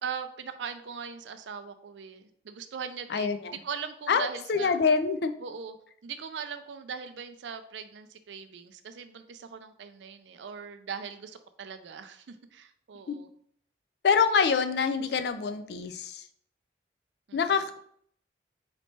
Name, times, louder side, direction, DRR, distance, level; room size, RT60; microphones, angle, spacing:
voice 1, 0.0-4.8 5.4-5.7 6.0-13.3 17.3-17.5, right 6 dB, 90° right, 10 dB, 0.4 m, -40 dB
voice 2, 3.1-3.5 4.1-5.3 13.1-13.2 14.0-16.2 17.3-17.8, left 5 dB, 65° left, 9 dB, 0.4 m, -26 dB
4.1 x 3.1 x 3.2 m, 0.65 s
head